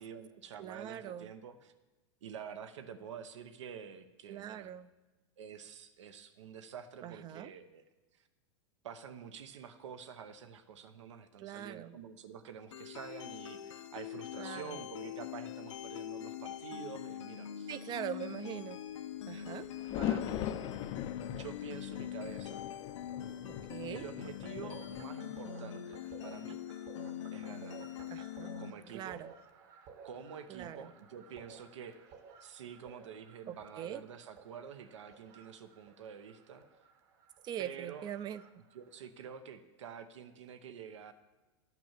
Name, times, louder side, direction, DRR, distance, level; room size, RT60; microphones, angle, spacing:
voice 1, 0.0-1.7 2.2-4.7 5.4-7.8 8.2-8.3 8.8-17.7 20.0-20.6 21.3-22.6 23.9-26.7 27.3-27.9 28.6-29.2 30.0-32.0 32.4-36.6 37.6-38.1 38.7-41.1, right 7 dB, 85° right, 10 dB, 0.9 m, -48 dB
voice 2, 0.6-1.3 4.3-4.9 7.0-7.5 11.4-12.0 14.4-14.8 17.7-18.8 19.3-19.7 23.7-24.0 28.1-28.5 28.9-29.3 30.5-30.9 33.5-34.0 37.4-38.4, right 10 dB, 30° right, 15 dB, 0.4 m, -42 dB
sound 1, 12.7-28.7, left 10 dB, 85° left, 0.7 m, -43 dB
sound 2, 19.4-25.0, left 11 dB, 35° left, 0.5 m, -40 dB
sound 3, 24.2-39.1, right 6 dB, 50° right, 1.3 m, -56 dB
12.0 x 5.9 x 7.4 m, 1.2 s
supercardioid pair, 135°, 15 cm